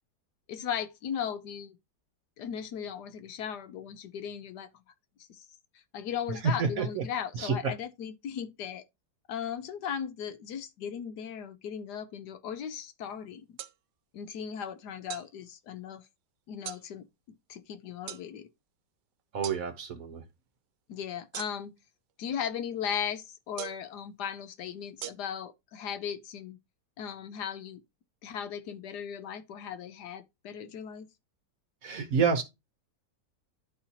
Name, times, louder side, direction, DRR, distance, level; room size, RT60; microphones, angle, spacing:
voice 1, 0.5-1.8 2.4-4.7 5.3-5.5 5.9-8.9 9.3-13.6 14.1-16.0 16.5-17.0 17.5-18.5 20.9-21.7 22.2-26.6 27.0-27.8 28.2-31.1, left 8 dB, 70° left, 1.2 m, -37 dB
voice 2, 6.6-7.0 7.3-7.7 19.3-20.2 31.8-32.4, right 6 dB, 55° right, 1.2 m, -29 dB
sound 1, 13.6-13.7 15.1-15.3 16.6-16.8 18.1-18.2 19.4-19.6 21.3-21.8 23.6-23.9 25.0-25.1, right 12 dB, 75° right, 1.2 m, -39 dB
11.0 x 4.3 x 2.8 m
omnidirectional pair, 1.9 m